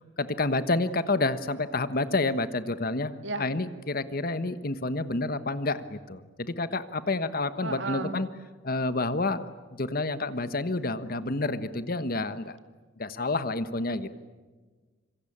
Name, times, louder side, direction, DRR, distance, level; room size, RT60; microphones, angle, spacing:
voice 1, 0.0-8.3 8.6-9.5 9.7-12.6 13.0-14.1, left 2 dB, 50° left, 12 dB, 1.2 m, -29 dB
voice 2, 7.6-8.2 13.9-14.1, right 3 dB, 70° right, 8 dB, 2.1 m, -34 dB
26.0 x 24.5 x 8.8 m, 1.4 s
head